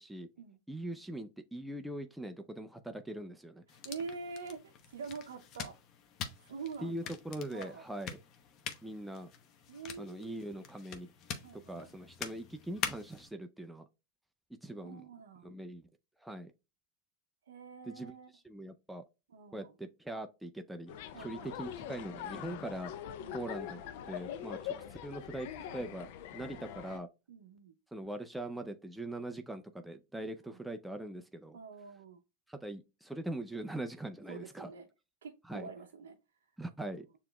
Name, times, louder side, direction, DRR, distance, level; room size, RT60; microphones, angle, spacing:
voice 1, 0.7-3.6 6.8-8.2 8.8-9.3 10.0-11.1 11.5-13.9 14.6-15.0 15.4-15.8 16.2-16.5 17.9-18.1 18.4-19.0 19.5-22.9 23.3-23.8 24.1-24.7 25.0-27.1 27.9-31.6 32.5-34.7 35.5-35.7 36.6-37.1, right 1 dB, 5° right, 0.4 m, -42 dB
sound 1, 3.7-13.3, left 7 dB, 45° left, 0.8 m, -45 dB
voice 2, 3.7-5.7 6.4-7.1 7.5-7.8 9.7-10.3 11.4-11.9 14.8-15.6 17.5-18.3 19.3-19.7 21.1-21.8 23.2-23.6 26.4-26.6 27.3-27.8 30.4-30.6 31.5-32.2 34.3-34.9 35.2-36.2, right 5 dB, 85° right, 0.6 m, -46 dB
sound 2, 20.9-27.0, left 10 dB, 65° left, 0.5 m, -43 dB
6.7 x 2.9 x 2.2 m
hypercardioid pair, 110°, 0 cm